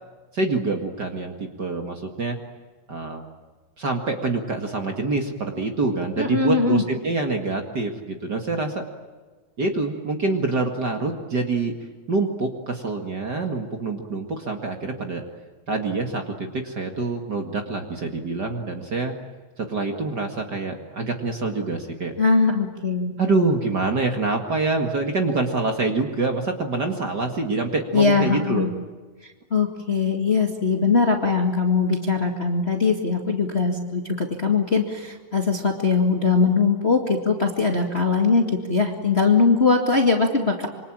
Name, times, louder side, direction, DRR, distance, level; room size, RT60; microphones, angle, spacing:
voice 1, 0.3-2.4 2.9-3.2 3.8-8.8 9.6-11.7 12.1-15.2 15.7-19.1 19.6-22.1 23.2-28.7, right 3 dB, 40° right, 4 dB, 2.2 m, -26 dB
voice 2, 6.2-6.8 22.2-23.1 27.9-28.7 29.5-40.7, left 4 dB, 25° left, 3 dB, 1.9 m, -21 dB
26.5 x 25.0 x 8.9 m, 1.4 s
omnidirectional pair, 3.4 m